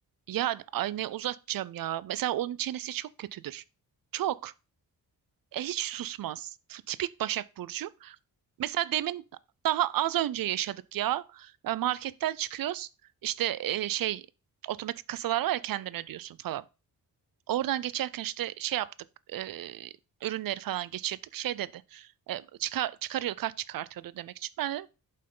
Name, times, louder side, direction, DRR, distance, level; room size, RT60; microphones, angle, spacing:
voice 1, 0.3-3.6 4.1-4.5 5.5-8.2 8.6-9.2 9.6-12.9 13.2-14.2 14.6-16.6 17.5-18.9 19.3-19.9 20.2-24.9, right 13 dB, 65° right, 0.5 m, -32 dB
7.6 x 5.5 x 3.8 m
wide cardioid pair, 145°, 37 cm